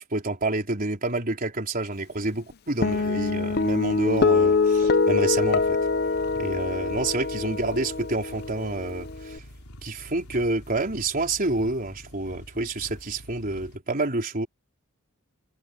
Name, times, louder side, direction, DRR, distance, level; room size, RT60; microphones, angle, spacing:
voice 1, 0.0-5.8 6.3-9.4 9.8-14.5, right 2 dB, 40° right, 4.1 m, -28 dB
sound 1, 2.8-13.8, left 1 dB, 90° left, 3.8 m, -46 dB
Guitar, 2.8-9.4, left 4 dB, 50° left, 0.7 m, -24 dB
head